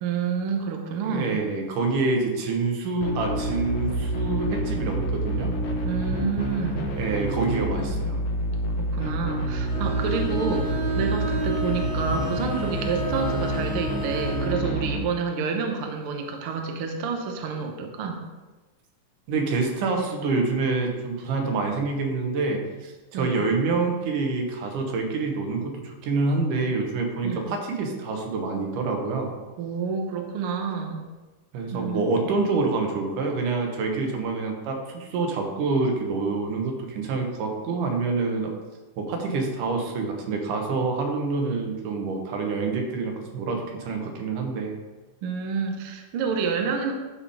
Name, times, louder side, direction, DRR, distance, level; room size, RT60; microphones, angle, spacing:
voice 1, 0.0-1.4 5.8-6.9 8.8-18.2 23.1-23.4 27.2-27.5 29.6-31.0 31.7-32.1 45.2-46.9, right 5 dB, 65° right, 3 dB, 1.4 m, -29 dB
voice 2, 1.0-5.5 6.9-8.2 19.3-29.3 31.5-38.5 39.0-44.7, right 3 dB, 85° right, 2 dB, 2.7 m, -27 dB
sound 1, 3.0-15.0, right 1 dB, 70° left, 1.2 m, -28 dB
Bowed string instrument, 9.7-14.6, right 1 dB, 45° right, 2.2 m, -32 dB
11.0 x 4.3 x 4.9 m, 1.2 s
omnidirectional pair, 3.6 m